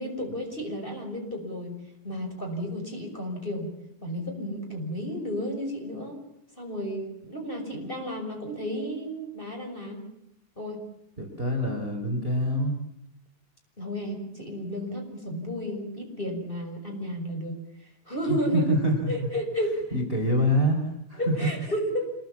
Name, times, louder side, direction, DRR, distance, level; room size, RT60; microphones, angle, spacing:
voice 1, 0.0-1.8 2.0-3.7 4.0-6.2 6.6-10.0 10.6-10.8 13.8-17.6 18.1-18.8 19.1-19.9 21.2-22.0, equal, 10° left, 1 dB, 6.0 m, -32 dB
voice 2, 11.2-12.7 18.3-19.1 19.9-21.3, equal, 15° right, 3 dB, 4.1 m, -25 dB
26.5 x 23.0 x 7.3 m, 0.79 s
omnidirectional pair, 5.0 m